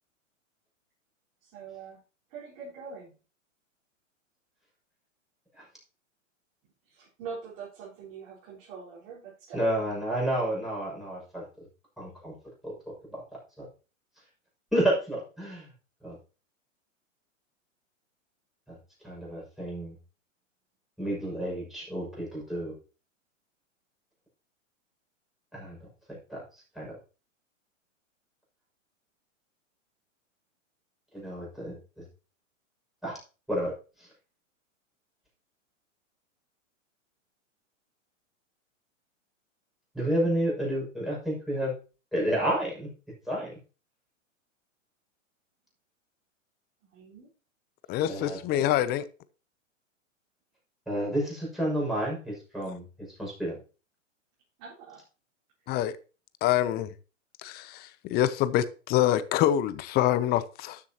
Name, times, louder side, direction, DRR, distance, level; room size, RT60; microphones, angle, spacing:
voice 1, 1.4-2.0 2.3-3.1 6.9-9.6 46.9-47.3 54.6-55.0, right 5 dB, 45° right, 4.4 m, -43 dB
voice 2, 9.5-11.4 12.0-12.3 12.6-12.7 13.1-13.7 14.7-15.7 16.0-16.2 18.7-18.8 19.0-19.9 21.0-22.7 25.5-25.8 26.1-26.4 26.7-26.9 31.1-32.0 33.0-33.2 33.5-33.7 34.0-34.1 39.9-41.7 42.1-42.9 43.3-43.5 48.1-48.6 50.9-53.5, right 1 dB, ahead, 6.3 m, -30 dB
voice 3, 47.9-49.1 55.7-56.0 56.4-56.9 57.4-60.8, left 12 dB, 25° left, 0.6 m, -26 dB
12.5 x 7.5 x 2.9 m
hypercardioid pair, 115°, 39 cm